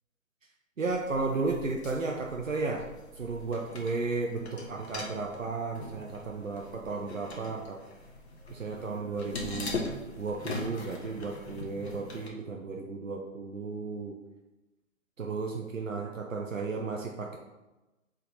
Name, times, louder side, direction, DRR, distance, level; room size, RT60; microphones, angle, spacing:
voice 1, 0.8-2.8 3.2-7.8 8.5-14.2 15.2-17.4, right 3 dB, 75° right, 1 dB, 0.9 m, -34 dB
sound 1, 0.9-12.3, left 3 dB, 55° left, 1.3 m, -42 dB
5.9 x 4.2 x 4.1 m, 1.0 s
figure-of-eight pair, 130°, 40 cm